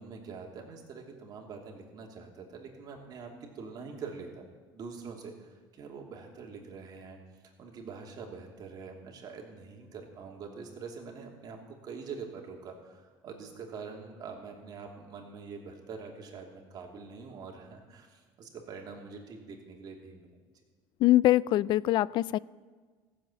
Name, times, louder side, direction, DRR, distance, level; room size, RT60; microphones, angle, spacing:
voice 1, 0.0-4.4 4.7-7.2 7.6-20.3, right 5 dB, 50° right, 1 dB, 2.8 m, -44 dB
voice 2, 21.0-22.4, left 15 dB, 60° left, 21 dB, 0.3 m, -23 dB
15.5 x 7.8 x 8.8 m, 1.4 s
cardioid pair, 120°, 9 cm